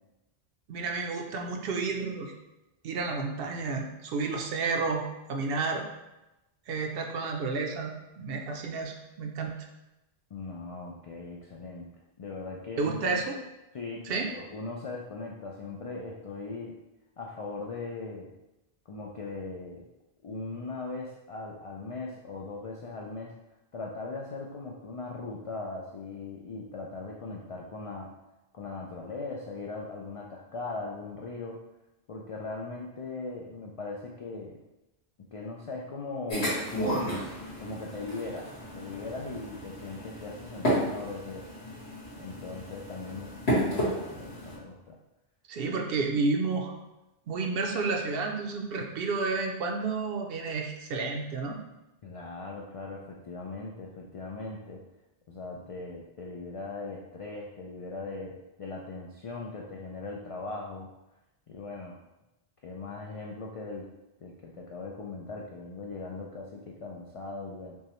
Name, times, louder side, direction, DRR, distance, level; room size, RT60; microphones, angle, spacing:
voice 1, 0.7-2.3 2.8-5.8 6.7-9.5 12.8-13.4 14.0-14.3 45.5-46.7 47.3-51.6, right 4 dB, 70° right, 2 dB, 0.7 m, -31 dB
voice 2, 10.3-11.9 12.2-13.2 13.7-16.8 17.2-18.3 18.9-19.9 20.2-23.4 23.7-28.1 28.5-31.6 32.1-34.6 35.2-36.6 37.6-41.5 42.2-43.4 43.6-45.0 52.0-54.8 55.3-60.9 61.5-62.0 62.6-63.9 64.2-67.8, left 3 dB, 65° left, -1 dB, 0.3 m, -39 dB
sound 1, 36.3-44.5, equal, 90° left, 1.9 m, -32 dB
5.4 x 2.1 x 3.0 m, 0.98 s
omnidirectional pair, 1.1 m